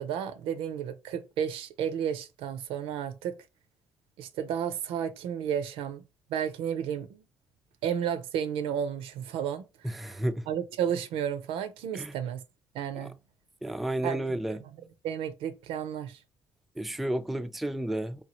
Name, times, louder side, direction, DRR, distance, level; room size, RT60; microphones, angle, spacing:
voice 1, 0.0-3.4 4.2-6.0 6.3-7.2 7.8-9.9 10.5-12.4 12.7-13.1 14.0-16.2, right 8 dB, 70° right, 0.5 m, -32 dB
voice 2, 9.9-10.4 11.9-12.1 13.0-13.1 13.6-14.6 16.8-18.2, right 1 dB, ahead, 0.3 m, -31 dB
2.9 x 2.2 x 2.9 m
hypercardioid pair, 55°, 10 cm